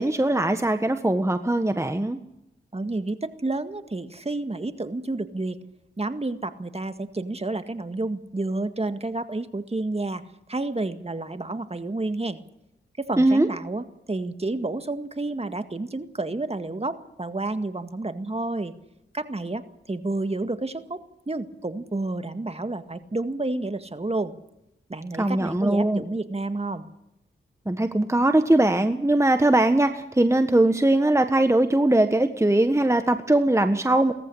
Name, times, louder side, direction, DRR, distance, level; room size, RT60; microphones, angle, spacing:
voice 1, 0.0-2.2 13.2-13.5 25.2-26.0 27.6-34.1, right 1 dB, 15° right, 8 dB, 1.5 m, -21 dB
voice 2, 2.7-5.6 6.0-10.2 10.5-12.4 13.0-18.7 19.1-24.3 24.9-26.9, right 2 dB, 30° right, 9 dB, 1.9 m, -30 dB
18.0 x 14.5 x 9.9 m, 0.86 s
cardioid pair, 40°, 21 cm